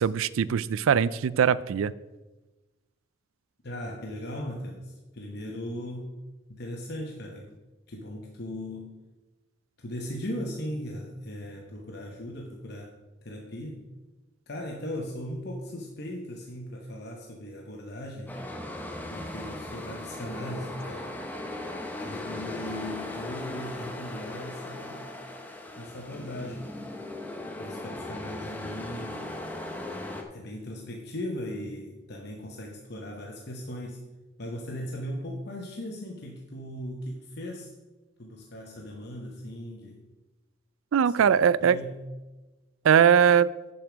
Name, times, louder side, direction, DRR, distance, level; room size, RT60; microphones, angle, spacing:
voice 1, 0.0-1.9 40.9-41.8 42.8-43.5, right 7 dB, 75° right, 19 dB, 0.4 m, -21 dB
voice 2, 3.6-6.2 6.5-7.6 7.9-9.0 9.8-12.9 13.2-13.9 14.5-18.4 19.1-21.2 22.0-25.2 25.8-26.7 27.5-29.3 30.3-34.0 34.4-37.7 38.2-40.0 41.0-42.1, left 1 dB, 50° left, 1 dB, 0.9 m, -38 dB
sound 1, 18.3-30.2, left 1 dB, 10° left, 0.8 m, -38 dB
9.0 x 7.0 x 5.0 m, 1.1 s
head